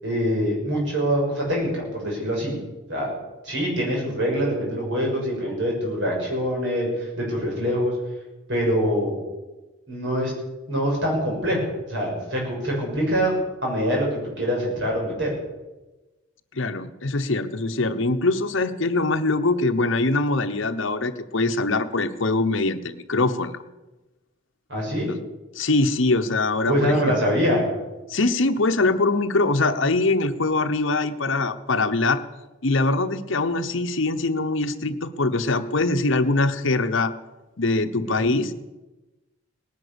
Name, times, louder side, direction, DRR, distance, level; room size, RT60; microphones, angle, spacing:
voice 1, 0.0-2.6 2.9-3.1 3.4-7.9 8.5-9.2 9.9-10.3 10.7-13.3 13.6-15.3 24.7-25.1 26.6-27.7 38.0-38.4, equal, 60° right, -2 dB, 6.7 m, -24 dB
voice 2, 16.5-23.6 25.1-25.2 25.5-27.2 28.1-32.2 32.6-37.1 37.6-38.5, left 2 dB, 70° left, 8 dB, 1.0 m, -23 dB
19.0 x 10.5 x 7.0 m, 1.1 s
head